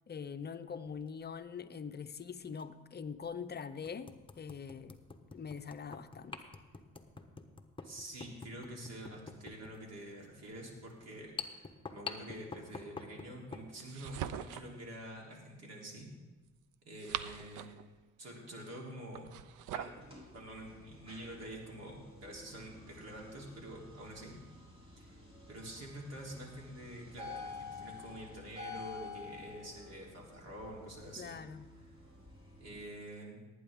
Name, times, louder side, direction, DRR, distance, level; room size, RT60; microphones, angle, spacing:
voice 1, 0.1-5.0 5.3-6.4 31.2-31.6, left 6 dB, 35° left, 10 dB, 0.7 m, -43 dB
sound 1, 0.9-1.1 2.5-2.6 3.2-3.3 3.8-13.7, left 4 dB, 15° left, 1.1 m, -47 dB
voice 2, 7.8-16.1 16.8-17.8 18.2-19.3 19.7-20.1 20.3-24.3 25.0-25.1 25.5-31.4 32.6-33.4, right 1 dB, 60° right, -1 dB, 3.4 m, -47 dB
sound 2, 13.7-14.8 16.7-17.9 19.1-20.0, right 11 dB, 80° right, 0.6 m, -42 dB
sound 3, 19.7-32.9, left 4 dB, 20° right, 3.8 m, -50 dB
19.0 x 9.3 x 3.6 m, 1.2 s
cardioid pair, 90°, 30 cm